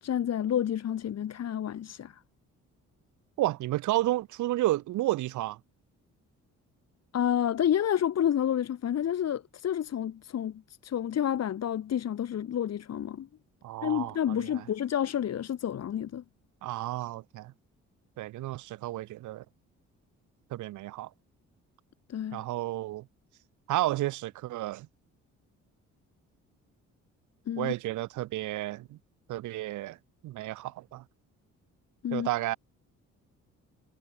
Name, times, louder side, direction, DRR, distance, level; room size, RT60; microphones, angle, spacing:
voice 1, 0.0-2.2 7.1-13.3 13.8-16.2 22.1-22.4 27.5-27.7 32.0-32.3, left 10 dB, 55° left, 1.8 m, -29 dB
voice 2, 3.4-5.6 13.6-14.6 16.6-17.5 18.2-19.4 20.5-21.1 22.3-23.1 23.7-24.9 27.6-29.0 29.3-30.0 30.2-31.0 32.1-32.6, right 16 dB, 75° right, 0.8 m, -31 dB
cardioid pair, 90°, 30 cm